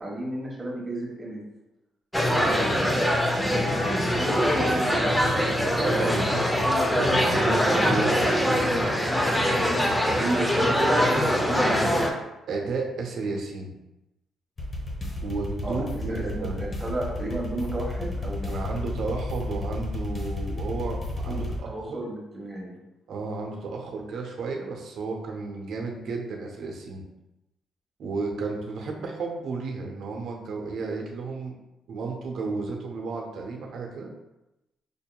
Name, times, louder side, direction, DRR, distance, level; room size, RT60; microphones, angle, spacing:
voice 1, 0.0-1.4 2.3-3.0 3.4-5.6 9.9-11.9 15.6-15.8 16.1-18.8 21.3-22.8, right 1 dB, 20° right, -3 dB, 1.2 m, -33 dB
sound 1, 2.1-12.1, equal, 10° left, 0.6 m, -23 dB
voice 2, 5.8-8.9 9.9-10.2 10.7-10.9 12.5-13.7 15.2-16.6 18.5-22.0 23.1-27.0 28.0-31.5 31.9-34.1, right 3 dB, 70° right, 1 dB, 0.7 m, -33 dB
sound 2, 14.6-21.6, left 1 dB, 35° left, 0.9 m, -32 dB
5.2 x 2.7 x 2.3 m, 0.95 s
cardioid pair, 90°, 0 cm